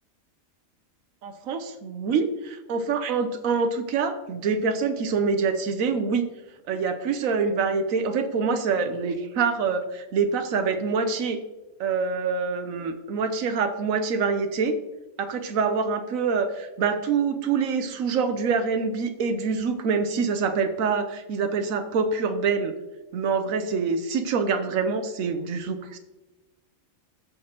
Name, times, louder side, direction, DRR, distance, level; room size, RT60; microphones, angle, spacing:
voice 1, 1.2-2.3 2.7-6.3 6.7-11.4 11.8-14.7 15.2-22.7 23.1-26.0, right 5 dB, 85° right, 8 dB, 1.1 m, -25 dB
14.0 x 5.1 x 2.9 m, 1.1 s
omnidirectional pair, 1.4 m